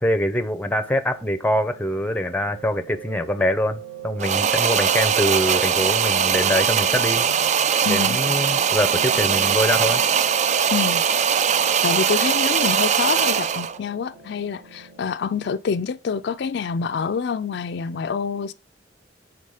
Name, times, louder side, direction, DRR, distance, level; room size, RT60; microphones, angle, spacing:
voice 1, 0.0-7.3 7.9-10.0, left 1 dB, 10° left, 0.6 m, -24 dB
Piano, 0.6-15.1, right 4 dB, 70° right, 1.8 m, -39 dB
sound 1, 4.2-13.8, right 7 dB, 40° right, 0.3 m, -21 dB
voice 2, 7.8-8.2 10.7-11.0 11.8-18.5, left 6 dB, 65° left, 0.4 m, -26 dB
5.5 x 4.1 x 4.8 m
head